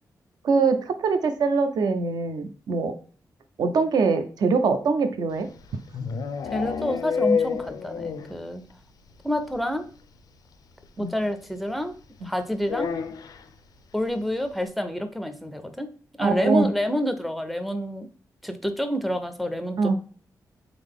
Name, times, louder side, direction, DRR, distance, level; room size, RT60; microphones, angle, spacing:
voice 1, 0.4-3.0 3.6-5.5 11.0-11.1 16.2-16.7 19.8-20.0, right 4 dB, 75° right, 9 dB, 0.6 m, -23 dB
sound 1, 5.4-8.4 8.7-8.8 9.1-9.2 9.5-9.6 10.8-10.9 12.6-13.5, left 6 dB, 65° left, 0.4 m, -28 dB
voice 2, 6.5-8.6 9.2-9.9 11.0-11.9 12.2-12.9 13.9-15.9 16.2-18.1 18.4-20.0, equal, ahead, 8 dB, 0.4 m, -28 dB
3.9 x 3.5 x 3.6 m, 0.42 s
wide cardioid pair, 180°, 7 cm